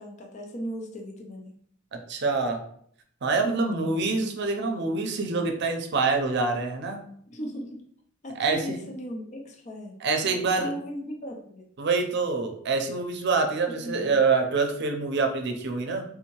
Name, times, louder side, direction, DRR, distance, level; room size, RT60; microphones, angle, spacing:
voice 1, 0.0-1.6 3.4-4.0 7.3-7.8 8.2-10.0 10.3-11.7 13.8-14.2, equal, 35° left, 2 dB, 0.5 m, -37 dB
voice 2, 2.1-2.6 3.2-7.0 8.4-8.6 10.0-10.7 11.8-16.0, right 4 dB, 60° right, 4 dB, 0.6 m, -26 dB
3.6 x 2.7 x 3.0 m, 0.65 s
head